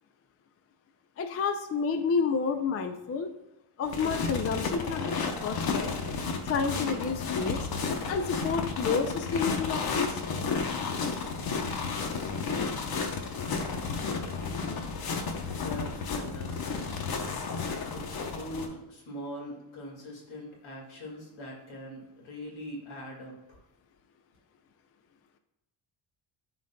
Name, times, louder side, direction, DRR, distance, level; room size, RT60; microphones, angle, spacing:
voice 1, 1.2-3.3 3.8-5.9 6.4-7.6 8.1-10.2, left 5 dB, 35° left, 7 dB, 0.4 m, -30 dB
sound 1, 3.9-18.7, left 4 dB, 50° left, 0.9 m, -32 dB
voice 2, 15.5-16.9 17.9-23.6, equal, 75° left, -1 dB, 2.2 m, -42 dB
11.0 x 4.0 x 2.2 m, 0.92 s
cardioid pair, 150°, 49 cm